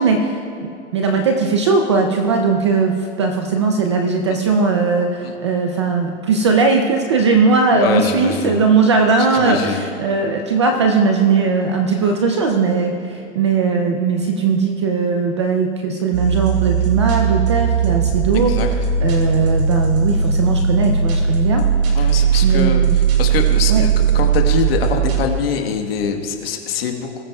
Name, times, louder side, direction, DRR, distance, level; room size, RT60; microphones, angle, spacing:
voice 1, 0.0-18.6 19.0-21.6 22.1-23.0 23.7-23.8, right 4 dB, 25° right, 3 dB, 0.4 m, -18 dB
voice 2, 7.7-8.6 9.3-9.8 18.3-18.7 21.9-22.8 23.2-23.9 24.1-27.2, left 6 dB, 55° left, 4 dB, 1.3 m, -23 dB
sound 1, 16.1-25.3, right 6 dB, 65° right, 2.7 m, -18 dB
21.0 x 8.9 x 2.3 m, 2.5 s
supercardioid pair, 175°, 36 cm